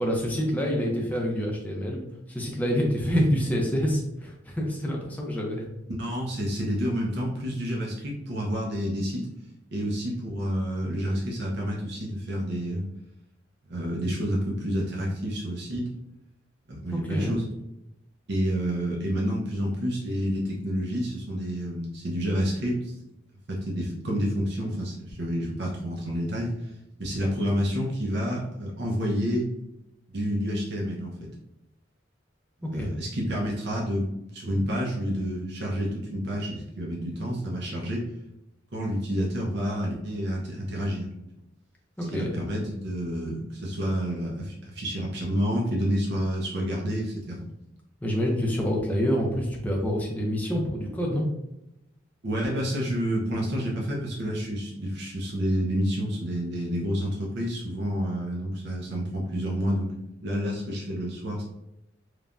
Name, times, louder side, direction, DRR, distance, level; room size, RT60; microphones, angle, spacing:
voice 1, 0.0-2.0 2.3-5.6 16.9-17.4 32.8-32.9 42.0-42.4 48.0-51.3, equal, 10° left, -1 dB, 0.5 m, -27 dB
voice 2, 6.0-9.2 9.7-12.8 13.7-15.9 16.7-17.5 18.3-22.9 23.5-26.5 27.0-29.5 30.1-31.3 32.7-38.0 38.7-41.1 42.1-47.5 52.2-59.9 60.2-61.4, equal, 55° right, -3 dB, 0.6 m, -29 dB
3.2 x 2.1 x 2.4 m, 0.87 s
head